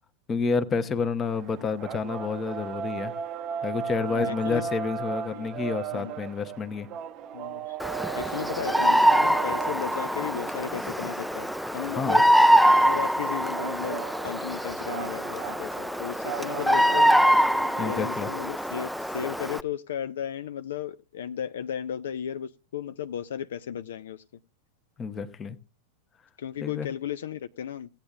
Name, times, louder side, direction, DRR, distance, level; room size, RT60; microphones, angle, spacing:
voice 1, 0.3-3.1 3.6-6.9 12.0-12.2 17.8-18.3 25.0-25.6 26.6-26.9, left 5 dB, 25° left, 0.9 m, -29 dB
sound 1, 1.3-17.9, right 8 dB, 35° right, 0.6 m, -37 dB
voice 2, 4.1-4.7 5.3-5.4 5.9-6.1 7.3-7.8 8.2-12.3 12.6-17.3 17.8-24.2 26.4-27.9, left 9 dB, 60° left, 0.4 m, -35 dB
Bird vocalization bird call bird song, 7.8-19.6, equal, ahead, 0.4 m, -24 dB
17.5 x 8.8 x 2.4 m
figure-of-eight pair, 90°, 0 cm